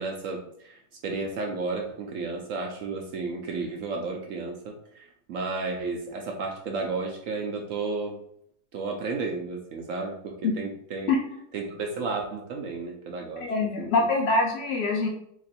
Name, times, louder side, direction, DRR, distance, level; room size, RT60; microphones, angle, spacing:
voice 1, 0.0-8.2 8.7-11.1 11.5-13.5 13.8-13.9, right 3 dB, 70° right, 2 dB, 0.7 m, -33 dB
voice 2, 13.4-15.1, left 3 dB, 60° left, 0 dB, 0.6 m, -24 dB
2.9 x 2.5 x 4.0 m, 0.70 s
omnidirectional pair, 1.8 m